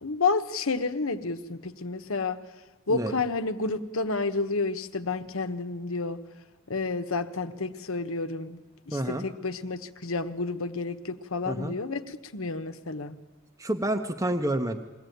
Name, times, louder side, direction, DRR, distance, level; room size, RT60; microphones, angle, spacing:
voice 1, 0.0-2.4 2.9-6.2 6.7-8.6 8.9-13.1, left 3 dB, 70° left, 11 dB, 1.1 m, -30 dB
voice 2, 8.9-9.3 11.5-11.8 13.6-14.8, right 1 dB, 15° right, 4 dB, 0.9 m, -29 dB
22.5 x 16.5 x 9.3 m, 1.2 s
head